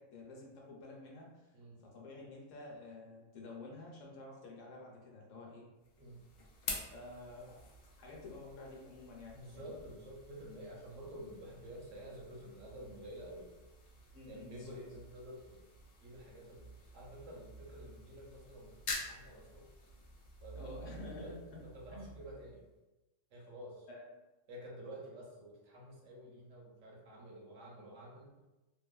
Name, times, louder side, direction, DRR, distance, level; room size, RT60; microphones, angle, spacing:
voice 1, 0.0-5.7 6.9-7.6 8.0-9.8 14.1-14.8 20.5-21.6 21.9-22.1 23.9-24.0, left 2 dB, 80° left, -2 dB, 1.0 m, -50 dB
sound 1, 5.8-22.8, left 2 dB, 65° left, 0.4 m, -49 dB
voice 2, 9.3-13.5 14.3-15.6 16.0-16.7 16.9-19.7 20.4-21.4 21.6-22.6 23.3-23.9 24.5-28.4, equal, 75° right, -3 dB, 1.1 m, -50 dB
2.8 x 2.2 x 2.3 m, 1.1 s
omnidirectional pair, 1.3 m